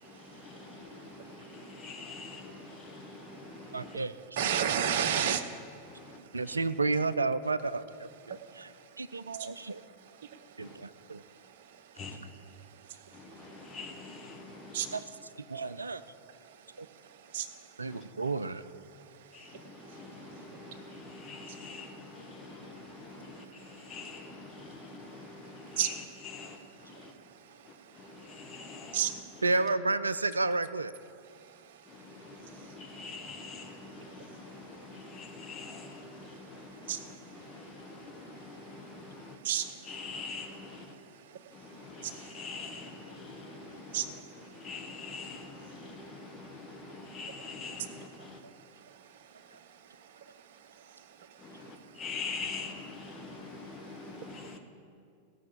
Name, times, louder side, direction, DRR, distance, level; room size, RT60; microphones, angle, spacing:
voice 1, 0.0-3.9 5.9-6.2 6.5-6.6 10.6-10.8 11.9-12.2 13.1-15.0 17.9-18.0 19.3-27.1 27.6-29.4 31.8-40.9 41.5-48.4 51.4-54.6, left 4 dB, 25° left, 3 dB, 1.6 m, -45 dB
voice 2, 3.7-4.5 6.3-8.7 9.0-9.8 10.6-11.2 14.9-15.0 15.5-16.0 16.8-16.9 17.8-18.6 29.4-30.9 49.5-49.6, right 3 dB, 80° right, 14 dB, 0.4 m, -31 dB
voice 3, 4.4-5.4 14.7-14.9 17.3-17.4 25.8-25.9 28.9-29.1 36.9-37.0 39.5-39.6 43.9-44.0, right 9 dB, 55° right, 10 dB, 0.8 m, -28 dB
17.0 x 6.4 x 7.4 m, 2.4 s
figure-of-eight pair, 90°, 0 cm